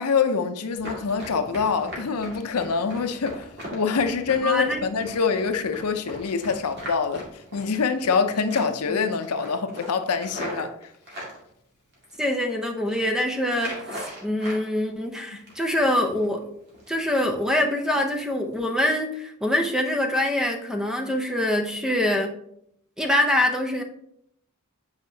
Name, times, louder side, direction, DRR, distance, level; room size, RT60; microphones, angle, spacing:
voice 1, 0.0-10.8 15.3-15.4, left 5 dB, 80° left, 0.6 m, -25 dB
Run, 0.7-8.2 8.5-8.9 9.2-11.4 11.9-12.5 12.8-13.0 13.5-14.6 15.0-15.8 16.1-16.3 16.7-17.0 17.3-17.5 17.9-18.1 18.5-18.6, equal, 50° right, 2.1 m, -39 dB
voice 2, 4.4-4.9 8.9-9.0 12.2-16.4 16.9-22.3 23.0-23.8, left 1 dB, 5° right, 0.7 m, -24 dB
8.1 x 4.7 x 2.8 m
head